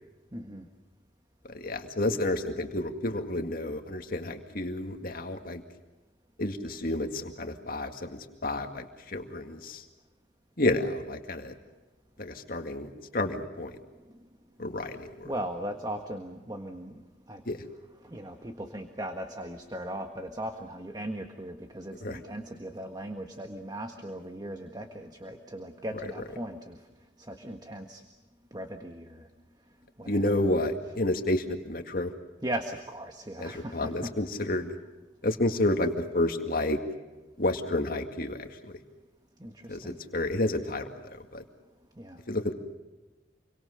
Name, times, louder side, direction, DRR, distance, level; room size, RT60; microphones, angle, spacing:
voice 1, 0.3-0.7 15.2-17.0 17.3-17.4 18.0-26.8 27.2-28.0 28.5-29.3 30.0-30.2 32.4-34.1 39.4-40.0 42.0-42.2, right 1 dB, 20° right, 5 dB, 1.6 m, -38 dB
voice 2, 1.5-5.6 6.4-9.8 10.6-11.5 12.2-13.8 14.6-15.3 17.5-17.6 22.0-22.2 30.1-32.1 33.4-34.7 35.2-36.8 37.4-38.7 39.7-41.4 42.3-42.5, left 1 dB, 50° left, 5 dB, 2.1 m, -30 dB
28.5 x 24.0 x 6.6 m, 1.2 s
head